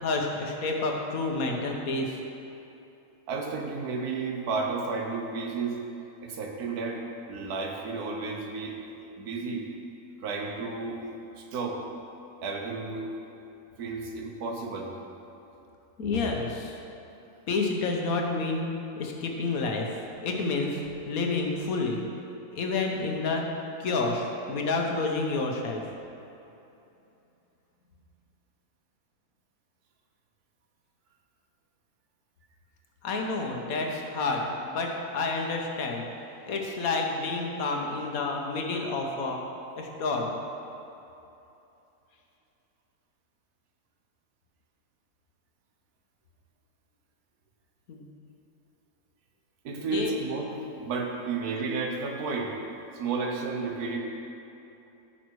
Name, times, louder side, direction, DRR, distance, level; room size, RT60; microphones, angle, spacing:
voice 1, 0.0-2.2 16.0-16.8 17.5-18.7 19.0-20.8 21.1-22.0 22.5-23.4 23.8-25.8 33.0-36.1 36.4-39.4 39.8-40.3 47.9-48.0 49.8-50.1, left 3 dB, 65° left, 1 dB, 1.5 m, -29 dB
voice 2, 3.3-5.8 6.2-8.8 9.2-9.7 10.2-11.0 11.4-11.8 12.4-13.1 13.8-14.9 49.6-52.6 52.9-54.0, right 4 dB, 75° right, 1 dB, 1.5 m, -32 dB
14.5 x 5.9 x 4.7 m, 2.9 s
omnidirectional pair, 1.6 m